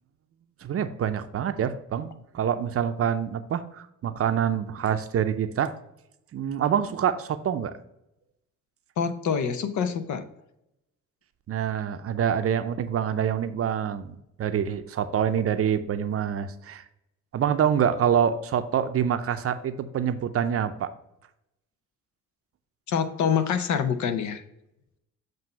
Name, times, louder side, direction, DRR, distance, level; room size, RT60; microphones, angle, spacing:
voice 1, 0.6-5.7 6.3-7.7 11.5-16.8 17.3-20.9, right 8 dB, 50° right, 10 dB, 0.6 m, -26 dB
voice 2, 9.0-10.2 22.9-24.4, left 7 dB, 70° left, 9 dB, 0.8 m, -26 dB
7.6 x 2.7 x 5.3 m, 0.83 s
cardioid pair, 90°, 30 cm